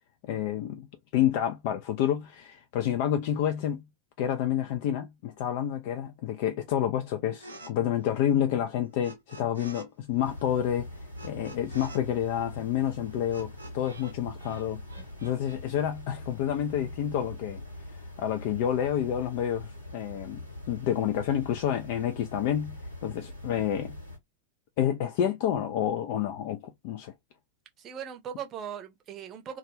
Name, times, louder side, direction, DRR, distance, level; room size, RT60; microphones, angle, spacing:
voice 1, 0.2-0.9 1.1-3.8 4.2-10.9 11.2-14.8 15.2-17.6 17.9-24.0 24.8-27.1, left 10 dB, 50° left, 0.3 m, -29 dB
sound 1, 7.4-7.7 8.0-9.9 10.1-14.1 14.4-15.6, right 1 dB, 75° right, 0.6 m, -48 dB
sound 2, 10.2-24.2, left 1 dB, 85° left, 1.2 m, -43 dB
voice 2, 23.5-23.8 27.8-29.6, right 8 dB, 30° right, 0.6 m, -40 dB
2.3 x 2.1 x 3.1 m
figure-of-eight pair, 90°, 0 cm